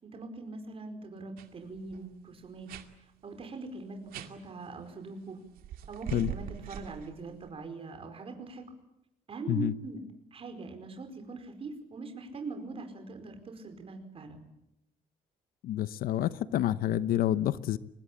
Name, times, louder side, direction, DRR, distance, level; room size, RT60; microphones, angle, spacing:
voice 1, 0.0-2.7 3.2-5.4 5.9-8.7 9.3-10.0 10.3-14.4, right 3 dB, 40° right, 4.8 m, -42 dB
sound 1, 1.4-1.5 1.8-2.0 2.7-2.9 4.1-4.3 5.6-7.5, right 10 dB, 80° right, 2.3 m, -41 dB
voice 2, 15.6-17.8, left 12 dB, 75° left, 0.9 m, -28 dB
24.5 x 21.0 x 8.7 m
cardioid pair, 115°, 15 cm